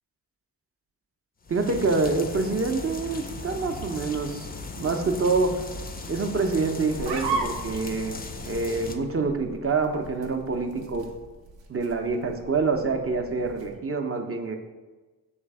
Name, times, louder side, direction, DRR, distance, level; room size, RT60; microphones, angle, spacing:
sound 1, 1.4-9.0, left 3 dB, 25° left, 0.4 m, -38 dB
voice 1, 1.5-5.7 6.1-11.1 11.7-14.6, right 3 dB, 30° right, 5 dB, 0.6 m, -26 dB
sound 2, 6.9-13.8, right 4 dB, 90° right, 0.6 m, -37 dB
3.2 x 3.1 x 4.7 m, 1.2 s
cardioid pair, 50°, 43 cm